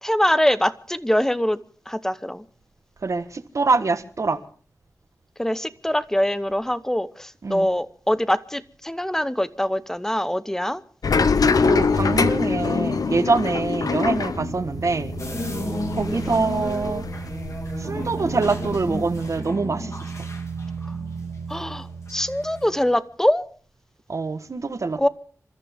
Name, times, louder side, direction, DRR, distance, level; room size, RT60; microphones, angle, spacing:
voice 1, 0.0-1.6 1.9-2.5 5.4-10.8 16.1-16.4 20.8-21.0 21.5-23.4 25.0-25.1, left 1 dB, 5° left, 0.9 m, -23 dB
voice 2, 3.0-4.4 7.4-7.7 11.6-15.1 15.9-17.0 17.8-19.9 20.2-20.3 24.1-25.1, right 3 dB, 55° right, 1.4 m, -24 dB
sound 1, 11.0-17.8 18.1-19.4, left 5 dB, 80° left, 0.8 m, -24 dB
sound 2, 14.3-23.0, right 5 dB, 80° right, 1.4 m, -34 dB
sound 3, 15.2-21.8 22.1-22.6, left 2 dB, 55° left, 3.0 m, -34 dB
27.5 x 14.0 x 3.6 m
wide cardioid pair, 100°, 6 cm